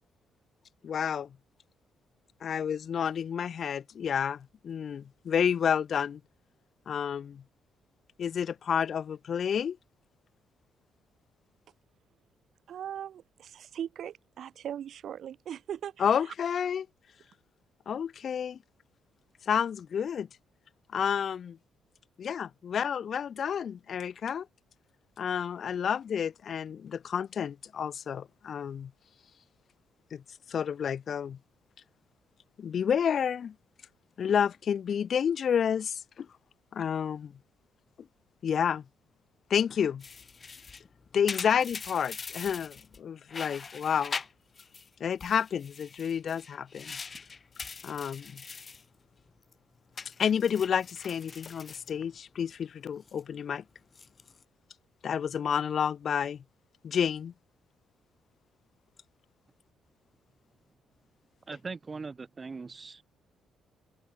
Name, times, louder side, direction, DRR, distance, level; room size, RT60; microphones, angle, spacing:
voice 1, 0.8-1.3 2.4-6.2 6.9-7.4 8.2-9.8 16.0-16.9 17.9-18.6 19.4-20.3 20.9-21.6 22.2-24.5 25.2-28.9 30.1-30.2 30.5-31.4 32.6-33.5 34.2-36.3 36.7-37.3 38.4-38.8 39.5-40.0 41.1-44.2 45.0-47.0 47.8-48.4 50.2-53.6 55.0-56.4 56.8-57.3, left 8 dB, 55° left, 0.9 m, -30 dB
voice 2, 12.7-16.3, right 9 dB, 65° right, 3.1 m, -39 dB
sound 1, 40.0-43.0 43.3-44.9 45.2-48.8 49.2-49.5 49.9-52.5 52.8-53.2 53.8-54.4, left 5 dB, 35° left, 3.2 m, -42 dB
voice 3, 61.5-63.0, right 4 dB, 30° right, 4.9 m, -40 dB
cardioid pair, 90°, 0 cm